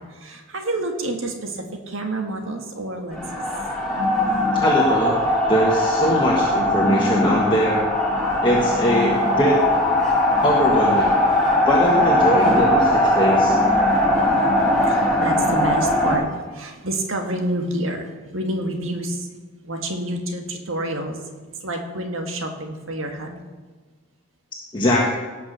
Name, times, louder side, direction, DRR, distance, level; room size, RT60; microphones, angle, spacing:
voice 1, 0.2-1.5 1.9-3.4 14.1-16.3 16.5-18.1 18.3-19.2 19.6-21.2 21.6-23.4, right 1 dB, 70° right, 4 dB, 1.8 m, -28 dB
sound 1, 3.1-16.2, left 1 dB, 5° left, 3.1 m, -20 dB
voice 2, 4.5-5.2 5.5-7.8 8.4-9.6 10.4-11.1 11.6-13.6 24.7-25.1, equal, 25° left, -4 dB, 1.5 m, -21 dB
17.5 x 6.0 x 6.7 m, 1.4 s
head